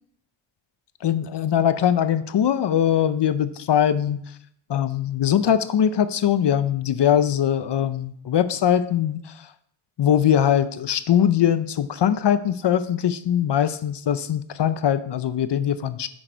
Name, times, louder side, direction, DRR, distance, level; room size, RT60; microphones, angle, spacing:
voice 1, 1.0-4.2 4.7-9.3 10.0-16.1, left 9 dB, 65° left, 13 dB, 0.6 m, -21 dB
9.1 x 6.5 x 4.5 m, 0.67 s
wide cardioid pair, 170°, 46 cm